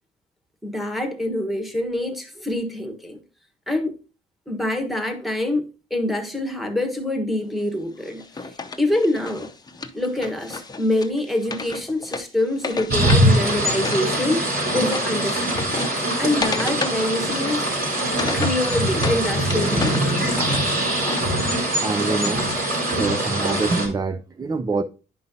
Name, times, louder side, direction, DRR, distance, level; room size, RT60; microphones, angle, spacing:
voice 1, 0.6-3.2 3.7-4.0 4.5-8.2 8.8-9.5 9.9-15.8 16.2-17.7 18.3-20.2, left 1 dB, ahead, 1.3 m, -25 dB
Wood, 8.0-14.1 14.3-19.2 19.5-21.2, left 3 dB, 20° left, 0.7 m, -33 dB
sound 1, 12.9-23.9, right 1 dB, 50° right, 4.1 m, -22 dB
voice 2, 21.7-22.6 22.9-24.8, right 3 dB, 20° right, 0.4 m, -25 dB
9.9 x 5.4 x 2.8 m
cardioid pair, 90°, 20 cm